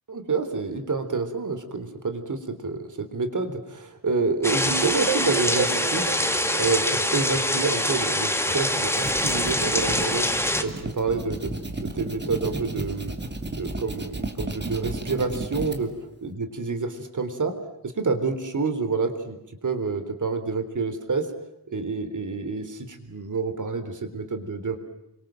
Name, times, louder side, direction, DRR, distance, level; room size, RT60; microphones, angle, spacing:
voice 1, 0.1-11.5 11.8-13.2 13.6-15.9 16.2-17.6 17.8-21.3 21.7-24.8, right 4 dB, 55° right, 9 dB, 3.7 m, -28 dB
sound 1, 4.4-10.6, left 1 dB, 5° left, 2.2 m, -24 dB
sound 2, 4.7-7.6, right 10 dB, 80° right, 1.1 m, -31 dB
sound 3, 8.7-15.8, right 2 dB, 30° right, 2.9 m, -33 dB
29.0 x 24.5 x 7.6 m, 0.89 s
wide cardioid pair, 145°, 37 cm